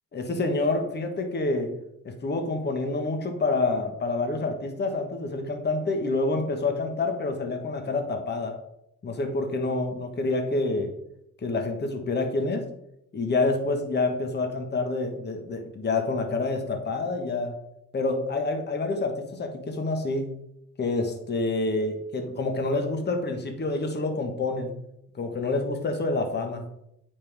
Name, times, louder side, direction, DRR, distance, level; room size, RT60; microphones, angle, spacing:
voice 1, 0.1-1.7 2.0-8.5 9.0-10.9 11.4-12.6 13.1-17.5 17.9-20.3 20.8-24.7 25.2-26.6, left 3 dB, 35° left, 5 dB, 1.3 m, -27 dB
8.8 x 5.5 x 3.5 m, 0.78 s
cardioid pair, 90°, 30 cm